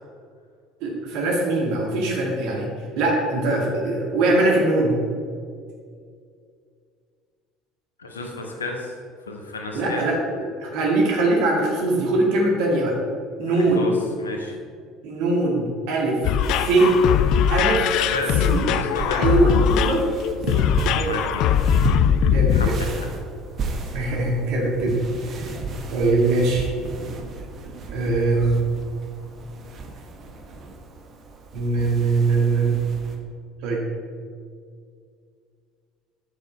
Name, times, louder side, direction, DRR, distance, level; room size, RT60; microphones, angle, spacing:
voice 1, 0.8-2.7 3.0-5.0 9.7-13.0 13.4-13.9 15.0-16.2 16.6-17.0 17.5-17.9 18.4-18.7 19.1-20.1 20.3-21.1 22.3-22.8 23.9-25.0 25.3-25.5 25.9-26.7 27.9-28.6 31.5-32.8 33.6-33.8, right 2 dB, 60° right, -1 dB, 1.8 m, -22 dB
voice 2, 8.0-9.0 9.3-10.1 13.5-13.9 14.2-14.6 18.0-19.2 21.1-21.5 22.5-23.1, left 2 dB, 85° left, 2 dB, 1.0 m, -32 dB
sound 1, 16.2-22.7, left 8 dB, 55° left, 0.3 m, -21 dB
sound 2, 16.4-33.2, right 3 dB, 45° right, 1.0 m, -34 dB
8.6 x 6.5 x 4.4 m, 2.2 s
figure-of-eight pair, 60°, 0 cm